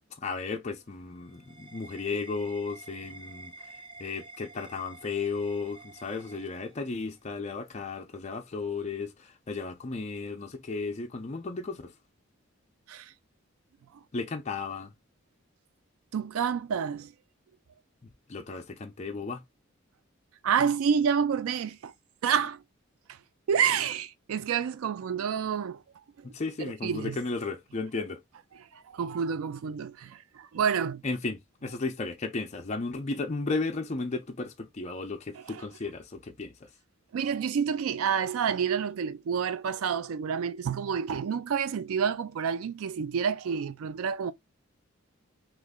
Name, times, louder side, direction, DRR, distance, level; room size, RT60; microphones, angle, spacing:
voice 1, 0.2-3.5 4.0-11.9 14.1-14.9 18.3-19.4 22.3-22.4 26.2-28.2 31.0-36.7, left 3 dB, 30° left, 0.5 m, -34 dB
sound 1, 0.8-7.2, right 3 dB, 25° right, 0.5 m, -50 dB
voice 2, 16.1-17.1 20.4-21.9 22.2-22.6 23.1-23.2 23.5-25.8 26.6-27.2 28.5-31.0 35.3-35.6 37.1-44.3, right 7 dB, 85° right, 0.4 m, -29 dB
3.1 x 2.4 x 3.5 m
head